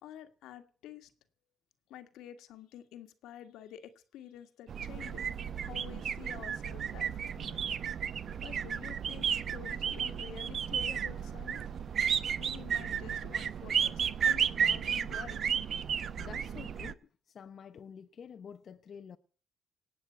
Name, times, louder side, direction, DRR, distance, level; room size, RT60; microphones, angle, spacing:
voice 1, 0.0-1.1 1.9-5.3 5.6-7.6 8.4-11.6 12.4-15.6, left 10 dB, 90° left, 1.6 m, -49 dB
sound 1, 4.7-16.9, right 8 dB, 55° right, 0.8 m, -33 dB
voice 2, 16.2-17.0 17.3-19.2, left 7 dB, 55° left, 0.9 m, -48 dB
19.0 x 8.5 x 8.0 m
cardioid pair, 90°, 0 cm